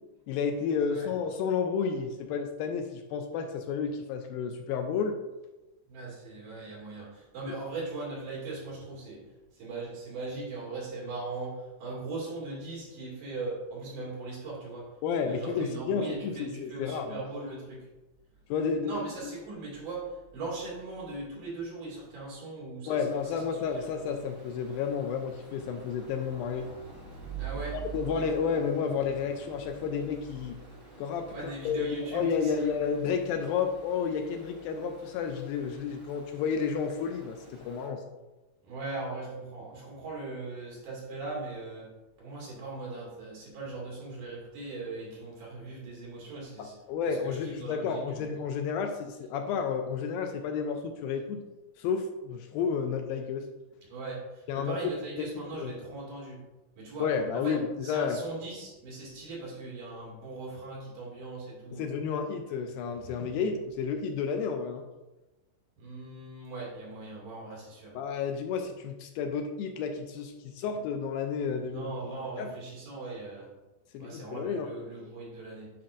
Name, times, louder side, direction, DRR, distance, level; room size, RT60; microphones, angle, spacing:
voice 1, 0.3-5.2 7.5-7.6 15.0-17.2 18.5-19.0 22.9-26.7 27.9-30.6 31.0-38.0 46.6-51.4 51.8-53.5 54.5-54.8 55.2-55.7 57.0-58.2 61.7-64.8 67.9-72.5 73.9-74.7, left 6 dB, 80° left, 5 dB, 2.2 m, -31 dB
voice 2, 5.9-9.3 9.5-14.9 15.3-17.9 18.8-23.0 23.3-24.2 27.4-27.8 31.3-32.7 38.6-41.9 42.2-46.8 47.1-48.3 53.9-56.4 56.8-57.5 57.8-61.9 65.8-68.0 70.8-70.9 71.6-73.5 74.0-75.7, right 3 dB, 60° right, -5 dB, 3.7 m, -39 dB
Stream, 23.0-37.9, right 6 dB, 35° right, 1.2 m, -47 dB
9.4 x 5.9 x 2.5 m, 1.1 s
omnidirectional pair, 4.4 m